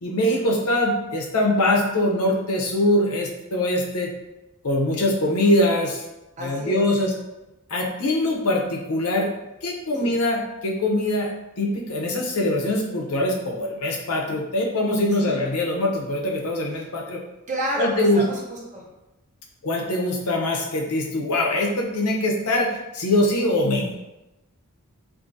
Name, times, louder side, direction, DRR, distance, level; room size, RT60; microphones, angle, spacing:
voice 1, 0.0-4.1 4.6-6.0 6.4-7.1 7.7-9.3 9.6-11.3 11.6-17.2 17.8-18.2 19.6-24.0, left 1 dB, 85° left, -1 dB, 0.7 m, -23 dB
voice 2, 6.4-6.8 9.9-10.1 15.1-15.4 16.8-16.9 17.5-18.8, equal, 35° right, -3 dB, 0.8 m, -30 dB
2.7 x 2.7 x 3.8 m, 0.98 s
head